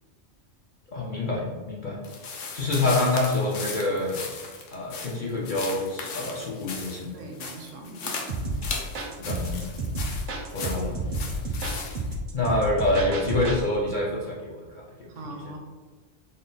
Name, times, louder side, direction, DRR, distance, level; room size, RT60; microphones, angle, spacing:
voice 1, 0.9-2.0 2.5-4.2 4.7-7.1 9.2-9.7 10.5-10.9 12.3-15.5, left 2 dB, 55° left, -4 dB, 0.6 m, -27 dB
sound 1, 2.0-12.1, left 4 dB, 70° left, 0.9 m, -37 dB
voice 2, 7.1-8.1 15.1-15.6, right 2 dB, 75° right, 3 dB, 0.9 m, -41 dB
sound 2, 8.3-13.6, right 1 dB, 55° right, 0.6 m, -31 dB
3.7 x 2.0 x 3.9 m, 1.4 s
omnidirectional pair, 1.3 m